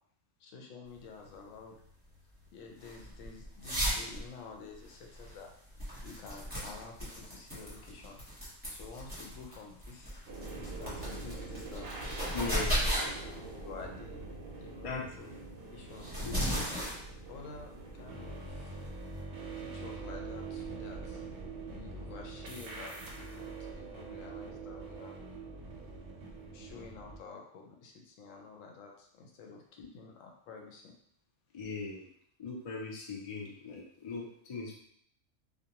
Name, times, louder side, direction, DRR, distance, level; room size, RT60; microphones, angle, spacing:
voice 1, 0.4-1.8 2.5-5.5 6.0-8.2 8.7-10.2 10.5-11.9 12.4-12.9 13.6-14.2 14.6-15.4 15.7-16.1 16.6-16.8 17.3-18.8 19.6-21.2 21.6-25.1 26.5-31.0, left 4 dB, 85° left, 1 dB, 0.9 m, -50 dB
sound 1, 0.9-19.2, equal, 10° right, 1.0 m, -37 dB
sound 2, 10.3-27.2, right 3 dB, 60° right, 0.7 m, -44 dB
voice 2, 12.3-12.8 14.8-15.0 16.2-16.4 29.8-29.9 31.5-32.1 32.4-34.7, left 4 dB, 60° left, -2 dB, 0.3 m, -39 dB
2.4 x 2.2 x 2.8 m, 0.68 s
omnidirectional pair, 1.3 m